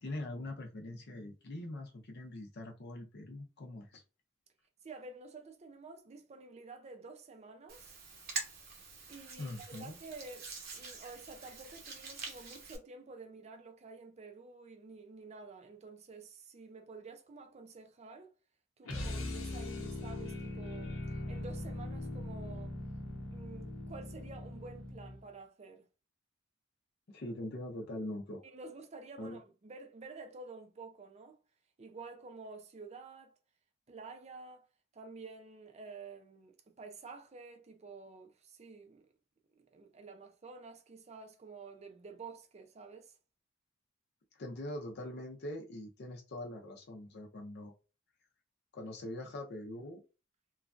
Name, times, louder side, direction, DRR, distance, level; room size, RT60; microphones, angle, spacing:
voice 1, 0.0-4.0 9.4-10.0 27.1-28.4 29.2-29.4 44.3-47.7 48.7-50.0, left 1 dB, 55° left, 0.6 m, -43 dB
voice 2, 4.8-8.0 9.1-18.3 18.8-22.7 23.3-25.9 28.4-31.4 31.8-33.4 33.9-34.7 34.9-39.1 39.6-43.2, right 3 dB, 35° right, 0.5 m, -50 dB
Hands, 7.7-12.8, right 4 dB, 50° right, 0.8 m, -45 dB
sound 1, 18.8-25.3, left 1 dB, 90° left, 0.7 m, -40 dB
3.1 x 2.3 x 2.4 m
head